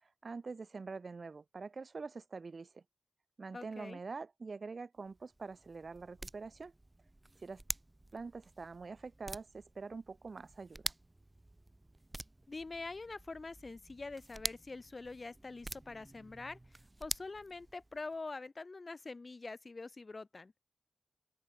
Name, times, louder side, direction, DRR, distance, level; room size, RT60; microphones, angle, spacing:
voice 1, 0.0-2.8 3.4-6.7 7.4-7.6 8.1-10.9, right 4 dB, 60° right, 1.8 m, -45 dB
voice 2, 3.5-4.0 12.5-16.6 17.0-20.5, left 3 dB, 45° left, 2.3 m, -45 dB
sound 1, 5.0-18.2, right 2 dB, 25° right, 0.7 m, -47 dB
open air
wide cardioid pair, 70°, 0 cm